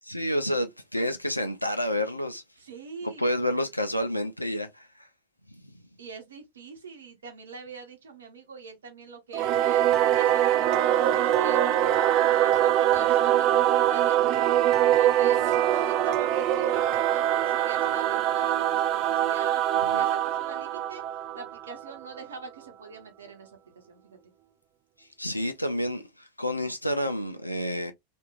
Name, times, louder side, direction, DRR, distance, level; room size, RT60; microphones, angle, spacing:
voice 1, 0.1-2.4 3.0-5.1 19.9-20.0 25.0-27.9, left 1 dB, 85° left, 0.4 m, -29 dB
voice 2, 2.6-3.4 6.0-11.6 12.1-13.6 13.9-14.4 15.0-19.6 19.9-21.0 21.3-24.2, right 5 dB, 65° right, 0.9 m, -44 dB
Singing / Musical instrument, 9.3-22.2, right 11 dB, 40° right, 0.3 m, -23 dB
2.9 x 2.5 x 2.4 m
figure-of-eight pair, 90°, 0 cm